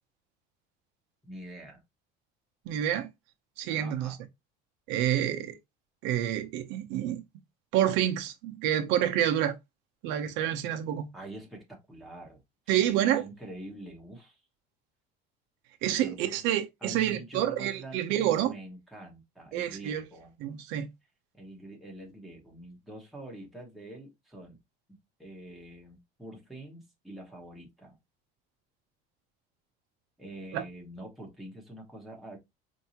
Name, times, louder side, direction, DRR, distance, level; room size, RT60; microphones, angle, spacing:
voice 1, 1.2-1.8 3.7-4.2 11.1-12.4 12.7-14.4 16.0-16.4 16.8-20.3 21.3-24.6 25.2-28.0 30.2-32.4, right 1 dB, ahead, 1.1 m, -45 dB
voice 2, 2.7-3.1 3.6-4.2 4.9-5.6 6.0-7.2 7.7-9.6 10.0-11.1 12.7-13.2 15.8-18.5 19.5-20.0 20.4-20.9 30.5-30.6, right 11 dB, 70° right, 0.7 m, -28 dB
4.5 x 2.7 x 2.8 m
cardioid pair, 160°, 20 cm